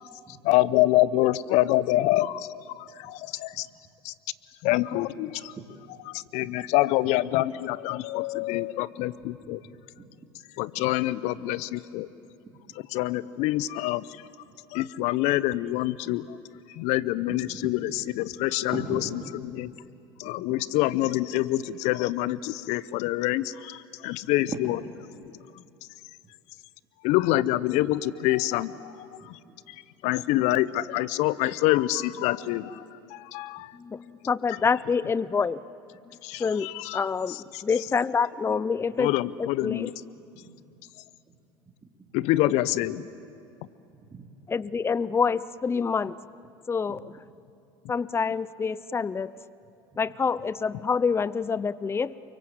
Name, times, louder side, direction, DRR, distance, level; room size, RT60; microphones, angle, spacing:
voice 1, 0.4-2.5 2.8-3.7 4.0-4.1 4.6-5.5 6.1-9.6 10.6-12.1 12.9-14.2 14.7-16.4 16.7-19.0 19.5-19.7 20.2-24.8 27.0-29.4 30.0-32.8 33.1-33.7 36.2-37.0 37.3-37.6 39.0-39.9 42.1-43.0, left 16 dB, 65° left, 18 dB, 0.9 m, -26 dB
voice 2, 9.5-10.1 12.7-12.8 17.3-17.6 18.7-19.3 24.5-24.7 29.4-29.5 33.6-33.7 40.1-40.5 41.8-41.9 44.1-44.3 46.9-47.0, right 4 dB, 25° right, -2 dB, 3.3 m, -39 dB
voice 3, 33.7-35.6 36.4-39.1 39.4-39.9 44.5-46.2 46.7-47.1 47.9-49.4 50.0-52.1, left 5 dB, 20° left, 19 dB, 0.6 m, -27 dB
29.5 x 23.5 x 8.0 m, 2.7 s
hypercardioid pair, 80°, 13 cm